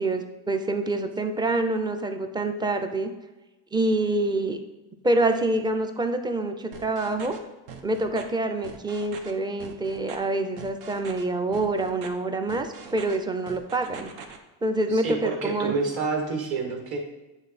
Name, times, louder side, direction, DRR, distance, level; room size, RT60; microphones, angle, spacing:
voice 1, 0.0-3.1 3.7-4.6 5.0-7.4 7.8-14.1 14.6-15.8, right 2 dB, 10° right, 6 dB, 0.4 m, -26 dB
sound 1, 6.7-7.4 7.7-8.2 8.6-9.3 9.6-10.2 10.6-11.2 11.5-12.1 12.5-13.2 13.5-14.4, right 6 dB, 80° right, 1.0 m, -42 dB
voice 2, 14.9-17.0, right 4 dB, 50° right, 1 dB, 1.8 m, -28 dB
8.9 x 3.2 x 4.1 m, 1.1 s
cardioid pair, 115°, 47 cm